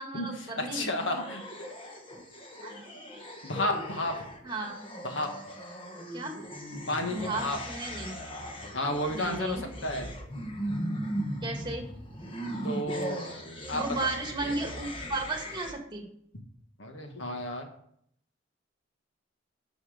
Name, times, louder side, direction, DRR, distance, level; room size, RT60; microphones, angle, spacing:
voice 1, 0.0-0.9 1.9-2.0 2.6-2.7 4.4-4.8 6.1-6.3 7.1-8.2 9.1-9.7 11.4-11.9 13.7-16.1, right 2 dB, 25° right, 3 dB, 2.0 m, -34 dB
voice 2, 0.6-1.4 3.4-4.1 5.0-5.3 6.9-7.6 8.7-10.1 12.6-13.4 13.7-14.0 16.8-17.7, left 1 dB, 75° left, 4 dB, 1.8 m, -32 dB
sound 1, 0.7-15.7, equal, 30° left, 1.5 m, -38 dB
12.0 x 6.2 x 5.1 m, 0.69 s
head